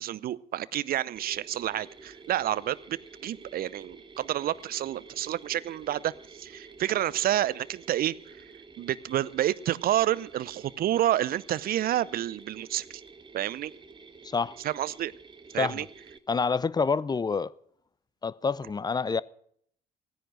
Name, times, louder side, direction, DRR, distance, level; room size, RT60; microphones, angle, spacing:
voice 1, 0.0-8.1 8.8-12.9 13.3-13.7 14.6-15.1 15.5-15.9, right 12 dB, 50° right, 0.6 m, -29 dB
Mechanisms, 1.2-16.2, right 4 dB, 25° right, 1.2 m, -50 dB
voice 2, 14.2-14.6 15.6-15.8 16.3-17.5 18.2-19.2, left 5 dB, 20° left, 0.5 m, -27 dB
16.0 x 10.0 x 6.4 m
hypercardioid pair, 55°, 20 cm